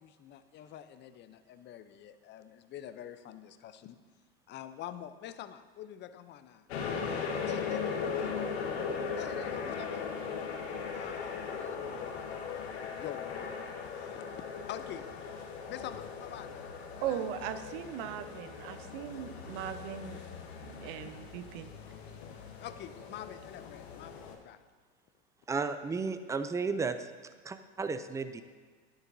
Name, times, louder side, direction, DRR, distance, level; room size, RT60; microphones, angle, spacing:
voice 1, 0.0-4.0 4.5-6.7 6.9-8.3 9.2-10.1 10.9-14.2 14.7-15.1 15.7-17.6 22.6-24.6, left 10 dB, 35° left, 11 dB, 0.6 m, -46 dB
sound 1, 6.7-24.4, left 6 dB, 80° left, 1.3 m, -39 dB
voice 2, 17.0-20.2 20.6-21.7, right 10 dB, 60° right, 10 dB, 0.8 m, -38 dB
voice 3, 25.5-27.0 27.4-28.4, right 4 dB, 10° right, 10 dB, 0.4 m, -33 dB
10.5 x 10.0 x 2.7 m, 1.5 s
hypercardioid pair, 95°, 31 cm